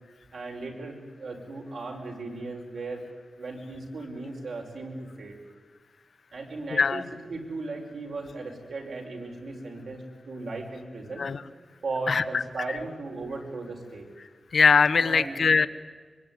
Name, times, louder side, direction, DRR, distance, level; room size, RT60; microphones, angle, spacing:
voice 1, 0.3-3.1 3.4-5.4 6.3-11.3 11.8-14.1 15.0-15.4, right 3 dB, 70° right, 1 dB, 5.4 m, -37 dB
voice 2, 6.7-7.0 11.2-11.4 12.1-12.4 14.5-15.7, left 5 dB, 60° left, 11 dB, 1.0 m, -21 dB
24.0 x 24.0 x 9.6 m, 1.4 s
wide cardioid pair, 175°, 0 cm